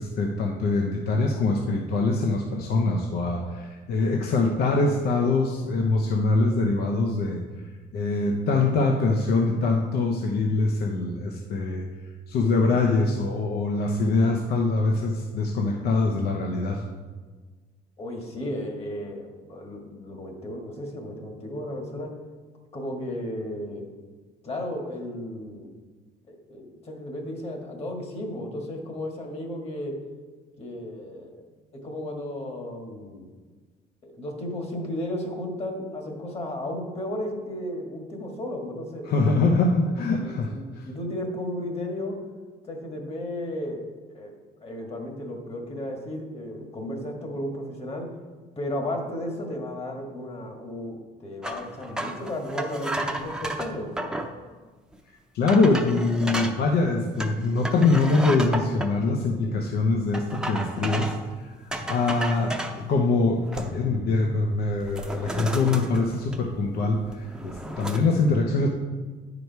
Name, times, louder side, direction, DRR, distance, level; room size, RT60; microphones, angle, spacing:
voice 1, 0.0-7.4 7.9-11.9 12.3-16.8 39.1-40.5 40.8-40.9 55.3-68.7, left 3 dB, 70° left, 1 dB, 0.9 m, -24 dB
voice 2, 18.0-22.1 22.7-23.9 24.4-25.7 26.3-30.0 30.6-31.4 31.7-33.3 34.0-39.1 40.2-42.2 42.6-44.3 44.6-48.1 48.6-53.9, left 1 dB, 35° left, 2 dB, 1.7 m, -34 dB
sound 1, 51.4-54.3 54.9-55.0 55.5-56.6 57.2-58.9 60.1-61.3 61.7-62.8 63.3-64.0 64.3-64.5 64.8-66.7 67.0-68.0, right 1 dB, 5° right, 0.7 m, -33 dB
9.5 x 4.9 x 4.7 m, 1.4 s
cardioid pair, 110°, 17 cm